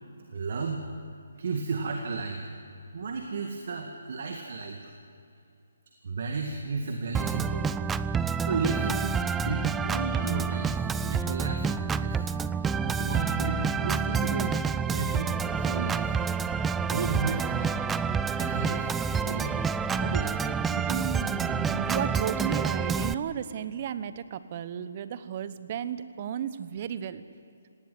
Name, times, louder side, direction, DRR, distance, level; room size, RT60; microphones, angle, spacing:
voice 1, 0.3-0.9 1.4-2.5 2.9-4.9 6.0-7.7 8.5-14.6 14.9-16.2 16.8-17.8 18.3-19.7 20.0-20.4, right 4 dB, 60° right, 3 dB, 2.0 m, -33 dB
Organ, 7.1-23.1, right 6 dB, 10° right, 0.4 m, -28 dB
voice 2, 20.7-27.2, right 9 dB, 40° right, 13 dB, 1.1 m, -34 dB
18.5 x 17.5 x 9.4 m, 2.5 s
hypercardioid pair, 150°, 0 cm